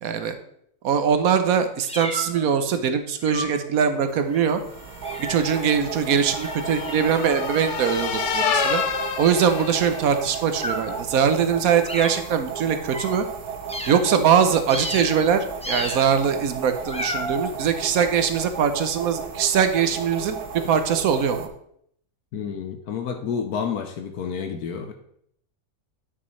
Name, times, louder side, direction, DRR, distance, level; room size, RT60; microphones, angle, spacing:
voice 1, 0.0-0.3 0.8-4.6 5.2-8.8 9.2-13.3 13.9-21.5, right 7 dB, 70° right, 8 dB, 1.1 m, -22 dB
sound 1, 1.9-2.6 3.2-3.7 4.3-4.6 5.0-5.8 6.4-9.8 10.5-11.0 11.9-12.3 12.9-13.1 13.7-14.2 14.7-15.3 15.6-16.2 16.8-17.5, equal, 5° left, 0.5 m, -33 dB
sound 2, 4.0-21.5, right 6 dB, 85° right, 1.3 m, -35 dB
sound 3, 4.9-10.4, left 7 dB, 60° left, 0.8 m, -29 dB
voice 2, 22.3-24.9, left 7 dB, 80° left, 6 dB, 1.2 m, -29 dB
9.4 x 6.1 x 3.1 m, 0.69 s
omnidirectional pair, 1.6 m